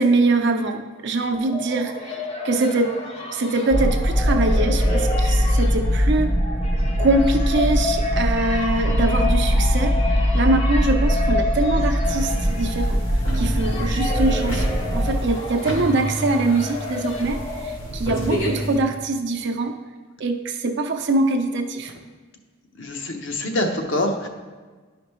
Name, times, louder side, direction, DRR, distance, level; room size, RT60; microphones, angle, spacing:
voice 1, 0.0-2.1 2.4-3.0 3.3-6.3 7.0-13.0 13.3-19.8 20.2-21.9, right 2 dB, 65° right, 5 dB, 0.7 m, -23 dB
sound 1, 1.2-18.2, left 2 dB, 30° left, 0.8 m, -31 dB
sound 2, 3.7-15.3, equal, 15° right, 0.5 m, -21 dB
sound 3, 12.0-18.8, equal, 85° left, 1.7 m, -30 dB
voice 2, 22.7-24.3, left 1 dB, 65° left, 3 dB, 0.9 m, -25 dB
11.0 x 5.1 x 3.1 m, 1.4 s
head